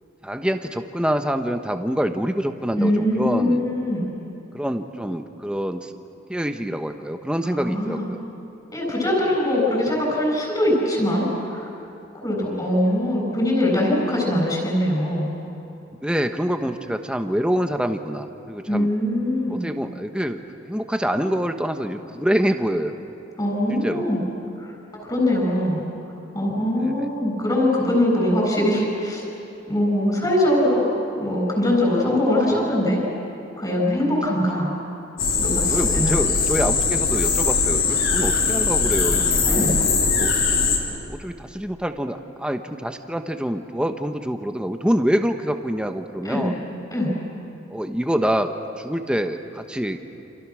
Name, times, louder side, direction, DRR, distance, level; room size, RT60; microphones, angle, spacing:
voice 1, 0.2-3.7 4.5-5.9 6.3-8.2 12.4-12.7 16.0-18.9 19.6-23.0 23.8-24.0 26.8-27.1 32.0-32.2 32.5-32.8 35.7-39.9 40.2-40.3 41.1-46.6 47.7-50.0, equal, 5° right, 6 dB, 1.1 m, -26 dB
voice 2, 2.8-4.1 7.4-8.1 8.7-11.7 12.2-15.3 18.7-19.6 23.4-24.2 24.6-24.7 25.0-25.9 26.3-29.2 29.7-30.9 31.2-33.0 33.6-34.7 35.4-36.2 39.5-39.8 46.2-46.5 46.9-47.1, left 1 dB, 20° left, -2 dB, 7.8 m, -22 dB
sound 1, 35.2-40.8, left 4 dB, 80° left, 3.9 m, -21 dB
29.0 x 28.0 x 6.4 m, 2.8 s
head